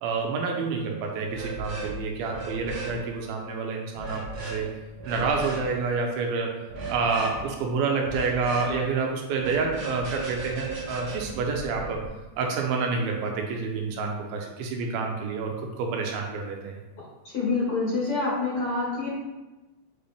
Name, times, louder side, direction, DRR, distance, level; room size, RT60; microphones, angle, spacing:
voice 1, 0.0-4.8 5.1-6.6 6.9-12.1 12.4-16.8, right 4 dB, 80° right, 1 dB, 2.6 m, -28 dB
sound 1, 1.3-2.0 2.2-3.0 4.0-4.6 5.0-5.6 6.7-7.4 8.0-8.7 9.3-12.0, right 3 dB, 65° right, 1.3 m, -36 dB
voice 2, 17.3-19.1, left 3 dB, 55° left, -6 dB, 1.5 m, -26 dB
7.7 x 4.1 x 3.4 m, 1.1 s
omnidirectional pair, 4.4 m